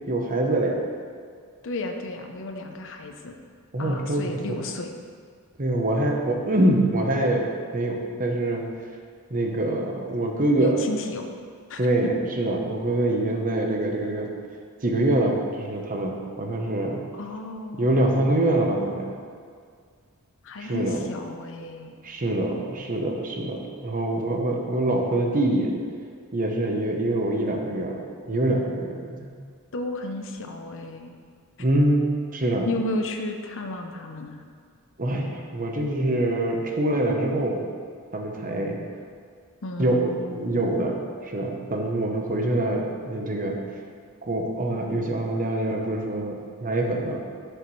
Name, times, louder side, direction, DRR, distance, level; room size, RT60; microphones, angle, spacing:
voice 1, 0.1-0.8 3.7-4.3 5.6-8.6 9.3-10.8 11.8-14.3 14.8-17.0 17.8-19.1 20.6-21.0 22.0-25.7 26.3-28.0 28.3-29.4 31.6-32.7 35.0-37.6 38.1-38.8 39.8-43.6 44.2-47.2, right 1 dB, 40° right, 1 dB, 1.0 m, -25 dB
voice 2, 1.6-3.3 3.8-4.9 10.6-11.3 11.7-11.8 17.1-18.2 20.4-22.0 29.7-31.1 32.6-34.4 39.6-40.5, left 2 dB, 60° left, 5 dB, 0.7 m, -33 dB
11.0 x 6.6 x 3.2 m, 2.1 s
head